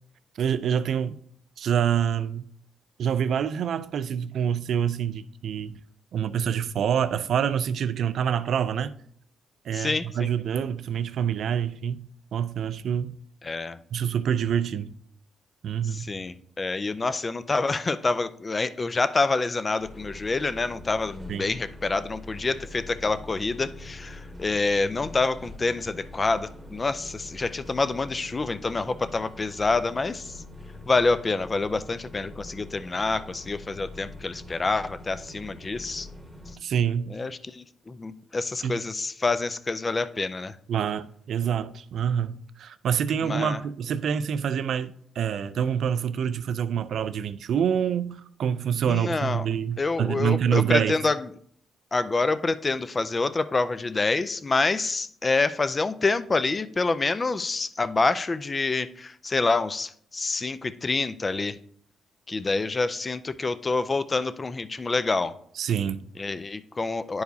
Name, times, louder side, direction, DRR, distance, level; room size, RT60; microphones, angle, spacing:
voice 1, 0.4-1.1 1.6-2.4 3.0-5.8 6.1-8.9 9.6-12.1 12.3-13.1 13.9-14.9 15.6-16.1 21.3-21.5 36.6-37.1 38.6-38.8 40.7-51.0 65.6-66.0, right 8 dB, 65° right, 0.4 m, -26 dB
voice 2, 9.7-10.3 13.4-13.8 15.9-30.4 30.9-36.1 37.1-40.6 43.2-43.6 48.9-49.5 49.8-51.3 51.9-61.6 62.3-65.3 66.2-67.2, left 3 dB, 30° left, 0.4 m, -27 dB
sound 1, 19.8-36.5, left 1 dB, 10° right, 1.1 m, -44 dB
10.0 x 4.7 x 2.7 m
cardioid pair, 90°, 0 cm